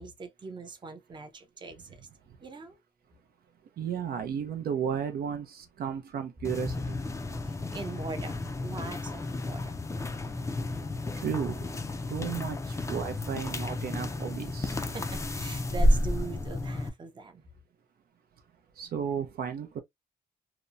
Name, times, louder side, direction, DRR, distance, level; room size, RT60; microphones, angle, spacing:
voice 1, 0.0-2.1 2.4-2.8 7.4-9.8 14.8-17.4, right 4 dB, 30° right, 0.6 m, -42 dB
voice 2, 3.8-6.8 11.2-11.6 12.1-14.8 18.8-19.8, right 8 dB, 70° right, 0.5 m, -33 dB
sound 1, 6.4-16.9, left 1 dB, 20° left, 0.4 m, -31 dB
2.8 x 2.1 x 2.4 m
cardioid pair, 105°, 16 cm